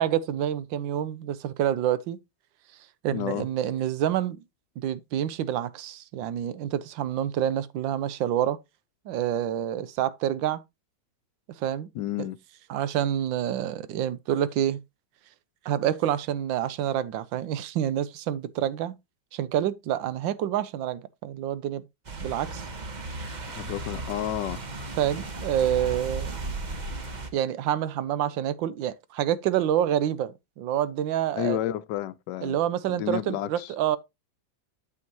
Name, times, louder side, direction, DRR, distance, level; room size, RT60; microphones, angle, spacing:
voice 1, 0.0-2.2 3.0-4.4 4.8-8.6 9.0-10.6 11.6-11.9 12.2-12.3 12.7-14.8 15.6-19.0 19.3-21.8 22.2-22.7 25.0-26.4 27.3-31.6 32.4-34.0, right 11 dB, 85° right, 1.4 m, -27 dB
voice 2, 3.1-3.4 11.9-12.4 23.5-24.6 31.3-32.6 32.9-33.7, left 12 dB, 70° left, 1.2 m, -31 dB
sound 1, 22.0-27.3, right 2 dB, 40° right, 0.7 m, -35 dB
8.3 x 7.2 x 2.9 m
omnidirectional pair, 2.1 m